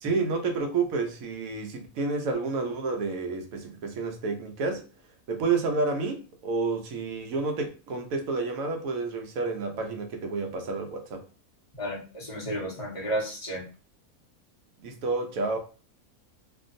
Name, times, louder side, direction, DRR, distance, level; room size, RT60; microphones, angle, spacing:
voice 1, 0.0-4.9 5.3-11.2 14.8-15.6, right 4 dB, 70° right, 1.1 m, -30 dB
voice 2, 11.8-13.6, equal, 25° left, 0.9 m, -32 dB
2.9 x 2.6 x 2.5 m
omnidirectional pair, 1.5 m